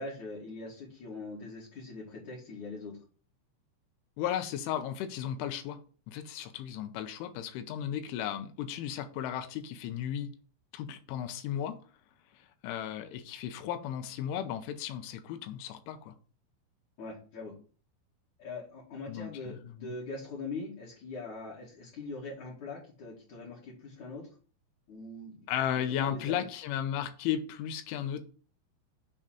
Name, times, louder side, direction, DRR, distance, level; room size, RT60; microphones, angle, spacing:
voice 1, 0.0-3.0 17.0-17.5 18.4-24.2 24.9-25.5 25.9-26.5, left 3 dB, 50° left, -6 dB, 2.7 m, -42 dB
voice 2, 4.2-5.8 6.1-10.3 10.7-11.8 12.6-16.1 19.1-19.9 25.5-28.3, left 10 dB, 85° left, 9 dB, 3.2 m, -35 dB
9.1 x 3.7 x 5.7 m, 0.40 s
omnidirectional pair, 5.6 m